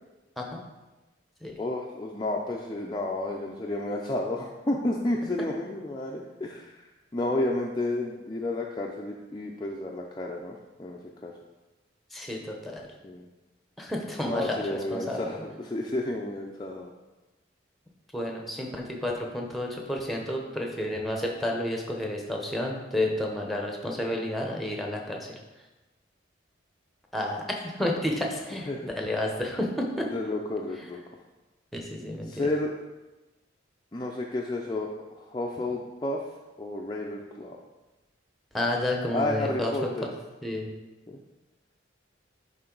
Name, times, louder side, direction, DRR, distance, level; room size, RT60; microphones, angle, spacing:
voice 1, 1.6-11.3 13.0-13.3 14.2-16.9 28.7-28.9 30.0-31.2 32.3-32.7 33.9-36.2 36.6-37.6 39.1-40.1 41.1-41.2, left 2 dB, 20° left, -1 dB, 0.4 m, -31 dB
voice 2, 12.1-12.8 13.8-15.4 18.1-25.3 27.1-28.7 28.9-30.1 31.7-32.4 38.5-39.9 40.4-40.7, left 1 dB, ahead, 0 dB, 0.8 m, -31 dB
10.5 x 3.7 x 3.9 m, 1.1 s
head